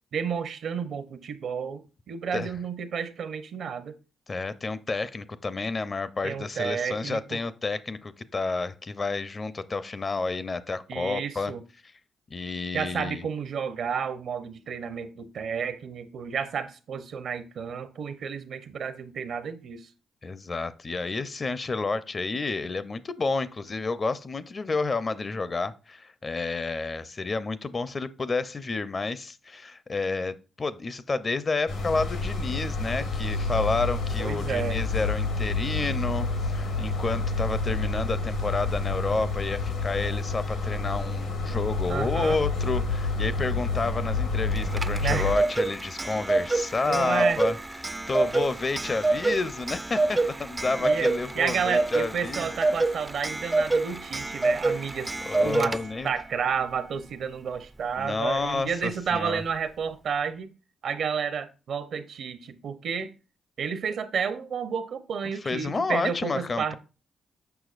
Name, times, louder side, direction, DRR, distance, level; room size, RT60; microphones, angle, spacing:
voice 1, 0.1-1.8 2.1-4.0 6.2-7.4 10.9-11.6 12.7-19.9 34.2-34.8 41.9-42.4 45.0-45.3 46.8-47.4 50.8-55.8 56.0-60.5 60.8-63.1 63.6-66.8, right 6 dB, 70° right, 0.7 m, -31 dB
voice 2, 4.3-11.5 12.3-13.3 20.2-47.6 47.8-52.5 54.6-54.8 55.2-56.1 58.0-59.4 65.4-66.7, left 3 dB, 40° left, 0.6 m, -30 dB
sound 1, 31.7-45.3, left 3 dB, 85° left, 1.8 m, -29 dB
Clock, 44.5-56.1, right 2 dB, 20° right, 0.3 m, -27 dB
6.9 x 5.8 x 2.4 m
supercardioid pair, 65°, 0 cm